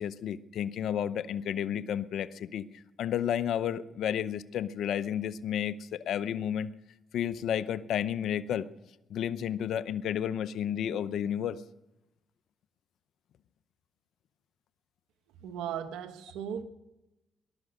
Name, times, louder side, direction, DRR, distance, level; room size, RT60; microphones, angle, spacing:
voice 1, 0.0-2.7 3.0-6.7 7.1-8.7 9.1-11.6, left 9 dB, 75° left, 0.7 m, -31 dB
voice 2, 15.4-16.6, right 9 dB, 90° right, 1.2 m, -37 dB
19.0 x 11.5 x 6.5 m
supercardioid pair, 70°, 0 cm